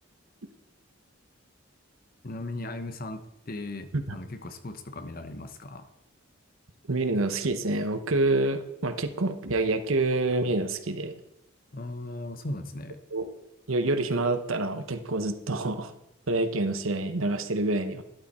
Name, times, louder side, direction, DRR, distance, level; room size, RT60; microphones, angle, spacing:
voice 1, 2.2-5.9 11.7-13.0, left 2 dB, 45° left, 9 dB, 1.0 m, -37 dB
voice 2, 6.9-11.2 13.1-13.3 13.7-15.9 16.3-18.0, right 2 dB, 80° right, 8 dB, 1.1 m, -27 dB
12.5 x 11.5 x 4.3 m, 0.87 s
head